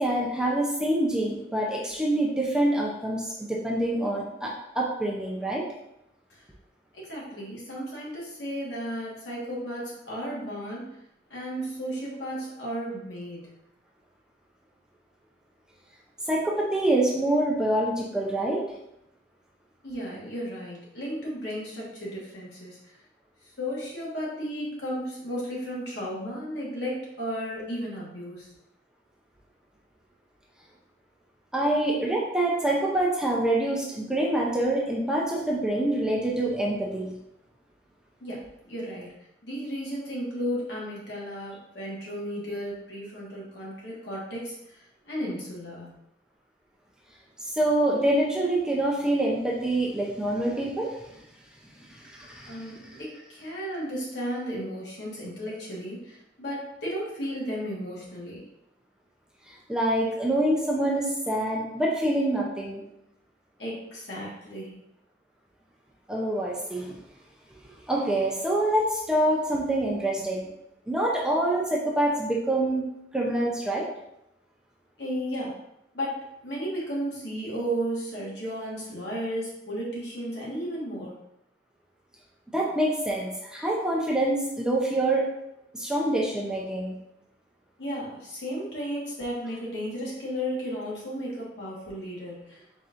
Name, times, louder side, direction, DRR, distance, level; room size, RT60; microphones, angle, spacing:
voice 1, 0.0-5.7 16.3-18.6 31.5-37.1 47.4-50.9 52.1-52.7 59.5-62.8 66.1-66.9 67.9-70.5 70.9-72.9 73.1-73.9 82.5-85.3 85.7-86.9, right 1 dB, 5° right, -3 dB, 0.5 m, -26 dB
voice 2, 6.9-10.9 11.3-13.5 19.8-22.8 23.6-28.5 38.2-39.1 39.4-45.9 52.4-58.4 63.6-64.8 75.0-75.6 75.9-81.2 87.8-92.6, equal, 65° left, -5 dB, 1.5 m, -34 dB
4.3 x 4.0 x 2.5 m, 0.82 s
head